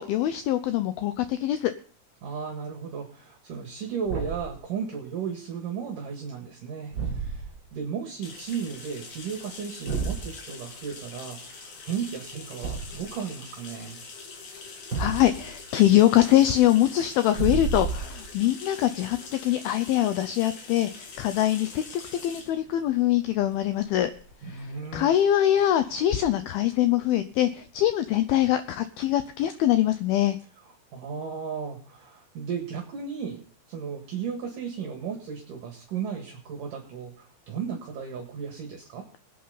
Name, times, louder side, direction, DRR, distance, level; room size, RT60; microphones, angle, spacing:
voice 1, 0.0-1.7 15.0-24.1 24.9-30.4, left 12 dB, 80° left, 10 dB, 2.3 m, -23 dB
voice 2, 2.2-14.0 24.4-25.1 30.9-33.4 33.7-39.1, right 6 dB, 60° right, 2 dB, 3.0 m, -35 dB
Thump thud, 4.0-4.6 6.9-7.6 9.9-10.3 12.6-13.1 14.9-15.5 17.3-18.3, right 5 dB, 30° right, 4.0 m, -30 dB
sound 1, 8.2-27.7, left 4 dB, 65° left, 4.3 m, -45 dB
21.5 x 8.7 x 4.0 m, 0.43 s
omnidirectional pair, 4.9 m